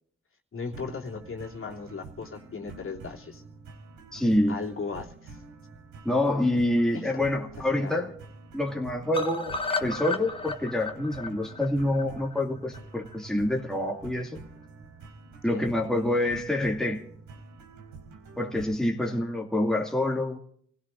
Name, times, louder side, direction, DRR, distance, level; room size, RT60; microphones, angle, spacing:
voice 1, 0.5-3.4 4.5-5.4 6.9-7.1 7.7-8.1 15.5-15.6 19.0-19.1, left 4 dB, 45° left, 3.2 m, -37 dB
sound 1, 0.7-18.9, right 3 dB, 85° right, 4.5 m, -47 dB
voice 2, 4.1-4.6 6.0-8.1 8.5-14.4 15.4-17.0 18.4-20.4, left 1 dB, ahead, 2.3 m, -27 dB
sound 2, 9.1-13.2 13.5-13.6 13.9-14.0 14.3-14.4, left 3 dB, 20° left, 1.5 m, -34 dB
28.5 x 16.5 x 2.7 m
cardioid pair, 90°, 30 cm